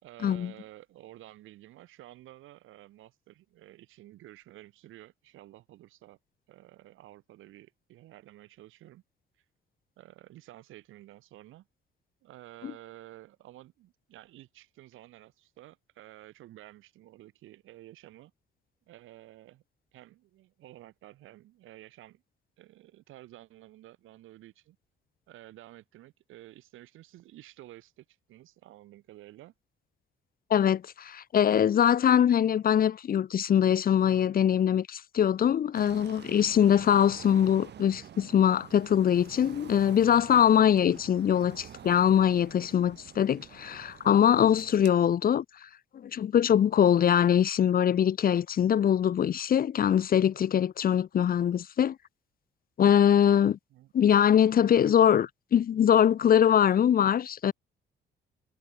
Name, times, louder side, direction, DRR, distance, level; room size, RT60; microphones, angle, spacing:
voice 1, 0.0-6.2 6.5-9.0 10.0-11.7 12.2-18.3 18.9-19.6 19.9-22.2 22.6-24.8 25.3-29.5 53.7-53.9 54.6-54.9, right 15 dB, 90° right, 4.7 m, -51 dB
voice 2, 30.5-45.7 46.0-52.0 52.8-53.6 53.9-57.5, left 9 dB, 45° left, 0.6 m, -23 dB
sound 1, 35.7-44.9, right 10 dB, 60° right, 1.6 m, -48 dB
cardioid pair, 90°, 20 cm